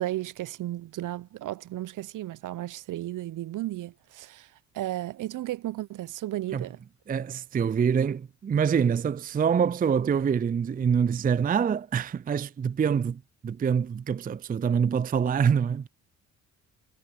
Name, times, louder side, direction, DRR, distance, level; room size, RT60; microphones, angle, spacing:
voice 1, 0.0-4.5 4.7-6.8, right 15 dB, 50° right, 0.9 m, -34 dB
voice 2, 7.1-15.9, right 7 dB, 20° right, 0.6 m, -25 dB
hypercardioid pair, 50°, 40 cm